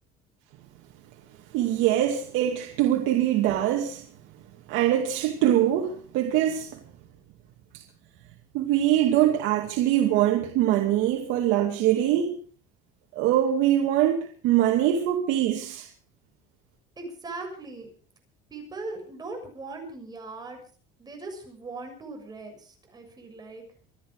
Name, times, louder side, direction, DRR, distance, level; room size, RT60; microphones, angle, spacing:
voice 1, 1.5-4.0 4.7-6.7 8.5-12.4 13.2-15.9, right 12 dB, 70° right, 2.5 m, -23 dB
voice 2, 17.0-17.9 18.5-20.6 21.0-23.6, right 3 dB, 20° right, 6.7 m, -39 dB
26.0 x 11.0 x 4.9 m
cardioid pair, 135°, 20 cm